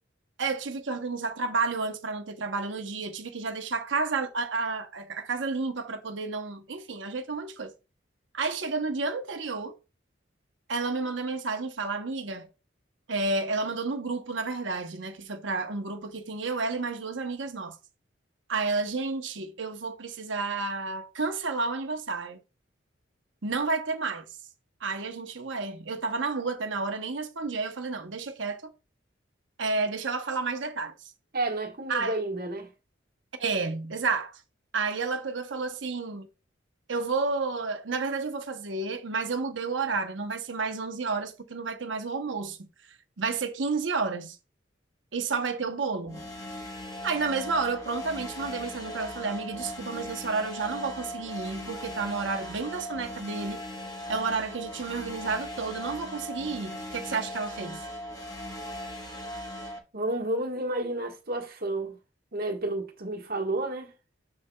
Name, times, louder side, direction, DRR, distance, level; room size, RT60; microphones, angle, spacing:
voice 1, 0.4-7.7 8.3-9.7 10.7-12.5 13.1-17.8 18.5-22.4 23.4-24.3 24.8-28.7 29.6-30.9 31.9-32.2 33.4-34.4 34.7-36.3 36.9-42.7 43.2-44.4 45.1-46.2 47.0-53.6 54.1-57.8, right 4 dB, 75° right, 0.9 m, -31 dB
voice 2, 31.3-32.7 59.9-62.0 62.3-63.9, right 2 dB, 50° right, 1.4 m, -31 dB
sound 1, 46.1-59.8, left 1 dB, 20° left, 1.1 m, -39 dB
6.7 x 6.6 x 2.3 m
head